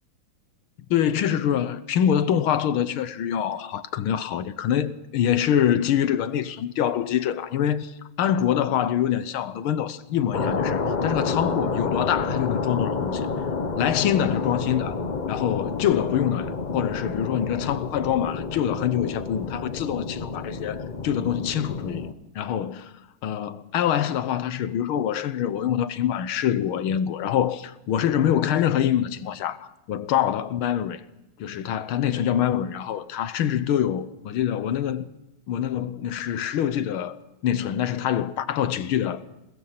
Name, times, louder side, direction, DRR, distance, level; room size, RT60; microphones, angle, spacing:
voice 1, 0.9-13.3 13.8-15.0 15.3-22.1 22.4-22.9 23.2-31.0 31.4-35.1 35.5-39.2, left 10 dB, 80° left, 1.8 m, -25 dB
sound 1, 10.3-22.1, left 4 dB, 45° left, 0.5 m, -29 dB
22.0 x 20.0 x 5.9 m
omnidirectional pair, 2.3 m